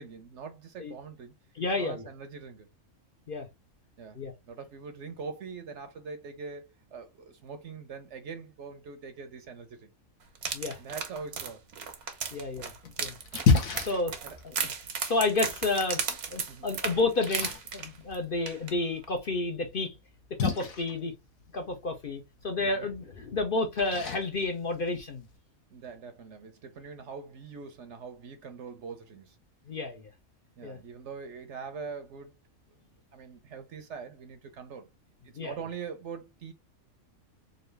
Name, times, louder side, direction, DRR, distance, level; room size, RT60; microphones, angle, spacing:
voice 1, 0.0-1.3 1.8-2.7 4.0-4.2 4.5-9.9 10.8-11.6 14.2-14.4 16.5-16.7 22.6-22.8 25.7-29.4 30.6-32.3 33.1-34.9 35.2-36.5, right 5 dB, 65° right, 0.9 m, -43 dB
voice 2, 1.5-2.0 3.3-3.5 4.1-4.3 10.5-10.8 12.3-12.7 13.0-13.1 13.9-14.1 14.4-14.5 15.1-16.0 16.3-19.9 20.4-21.1 21.5-25.2 29.7-30.1 30.6-30.8 35.3-35.6, left 3 dB, 50° left, 0.7 m, -30 dB
sound 1, 10.3-18.1 18.5-18.7 19.0-19.1, right 6 dB, 90° right, 1.4 m, -35 dB
Splash splatter, 12.4-25.4, left 4 dB, 70° left, 1.5 m, -34 dB
3.9 x 2.6 x 3.2 m
omnidirectional pair, 1.5 m